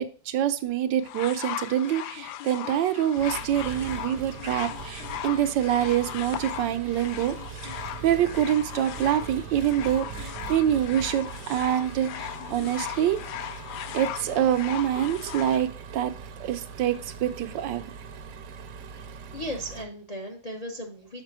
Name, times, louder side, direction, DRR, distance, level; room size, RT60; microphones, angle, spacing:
voice 1, 0.0-7.4 7.6-13.2 13.9-16.1 16.4-17.8, right 11 dB, 80° right, 1.3 m, -26 dB
sound 1, 1.0-15.6 16.5-16.6, left 11 dB, 75° left, 1.1 m, -38 dB
Engine, 3.2-19.9, right 6 dB, 65° right, 1.0 m, -41 dB
voice 2, 18.9-21.2, equal, 35° left, 0.6 m, -37 dB
6.6 x 5.0 x 4.6 m
omnidirectional pair, 2.0 m